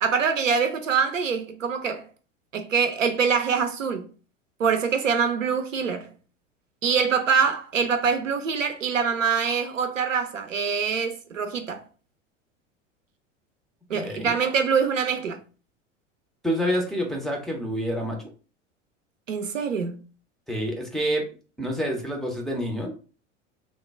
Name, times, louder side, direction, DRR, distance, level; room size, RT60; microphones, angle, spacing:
voice 1, 0.0-2.1 2.5-4.1 4.6-6.1 6.8-11.8 13.9-15.4 19.3-20.0, right 6 dB, 85° right, 0.5 m, -24 dB
voice 2, 13.9-14.3 16.4-18.2 20.5-21.2 21.6-22.9, equal, ahead, 0.4 m, -27 dB
3.1 x 2.1 x 3.3 m
figure-of-eight pair, 80°, 38 cm